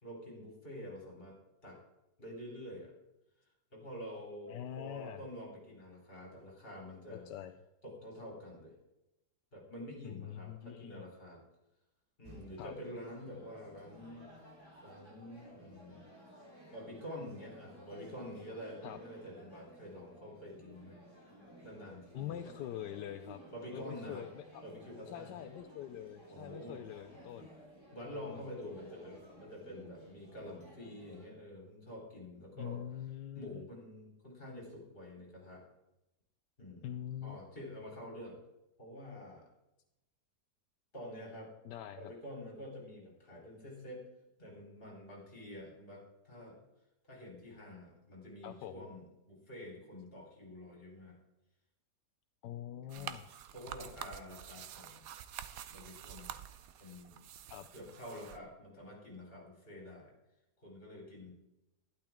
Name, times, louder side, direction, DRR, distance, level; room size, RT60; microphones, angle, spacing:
voice 1, 0.0-1.8 2.2-2.9 3.7-7.3 7.8-8.8 9.5-11.4 12.2-14.3 14.8-16.0 16.7-21.0 21.6-22.5 23.5-24.3 24.6-25.3 26.3-26.8 27.9-32.8 33.3-35.7 36.6-36.9 37.2-38.4 38.8-39.5 40.9-41.5 42.0-44.1 44.4-46.7 47.0-51.2 52.9-53.1 53.5-55.1 55.7-56.3 56.8-57.2 57.7-60.1 60.6-61.3, left 1 dB, 30° left, -1 dB, 3.6 m, -48 dB
voice 2, 4.5-5.2 7.1-7.6 10.0-11.1 12.6-12.7 18.8-19.0 22.1-23.4 23.7-24.6 25.1-27.5 28.1-28.4 32.6-33.6 36.8-37.4 41.6-42.1 48.4-48.9 52.4-53.2 57.5-57.7, left 11 dB, 80° left, 7 dB, 1.2 m, -44 dB
sound 1, 12.2-31.3, right 1 dB, 15° right, 3.6 m, -56 dB
sound 2, 52.9-58.4, right 10 dB, 70° right, 1.0 m, -48 dB
11.5 x 11.5 x 3.5 m, 0.92 s
omnidirectional pair, 1.8 m